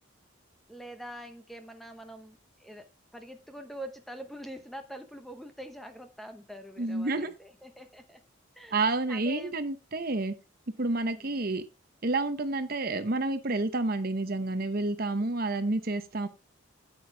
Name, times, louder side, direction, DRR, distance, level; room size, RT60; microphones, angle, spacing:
voice 1, 0.7-8.2 8.5-8.8 9.1-9.6 10.8-11.4, equal, ahead, 0.9 m, -45 dB
voice 2, 6.8-7.3 8.7-10.4 10.8-11.6 12.0-16.3, right 2 dB, 45° right, 0.9 m, -29 dB
9.3 x 8.6 x 3.4 m
head